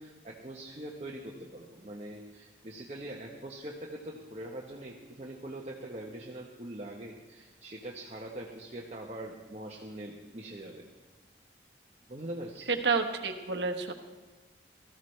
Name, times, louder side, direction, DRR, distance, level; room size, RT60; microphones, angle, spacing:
voice 1, 0.0-10.9 12.1-12.8, right 1 dB, 35° right, -1 dB, 1.0 m, -43 dB
voice 2, 12.7-13.9, right 4 dB, 75° right, 6 dB, 1.1 m, -29 dB
18.5 x 14.0 x 3.2 m, 1.3 s
head